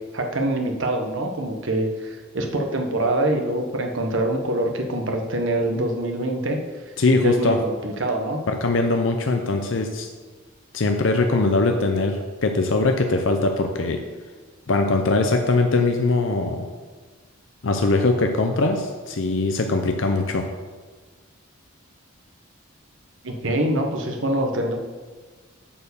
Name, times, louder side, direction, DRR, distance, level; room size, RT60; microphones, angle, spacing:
voice 1, 0.1-6.6 7.2-8.4 23.2-24.8, right 1 dB, 65° right, 2 dB, 1.1 m, -24 dB
voice 2, 7.0-7.6 8.5-10.1 10.7-14.0 14.7-16.7 17.6-20.5, left 3 dB, 65° left, 4 dB, 0.6 m, -21 dB
8.5 x 4.7 x 6.9 m, 1.4 s
head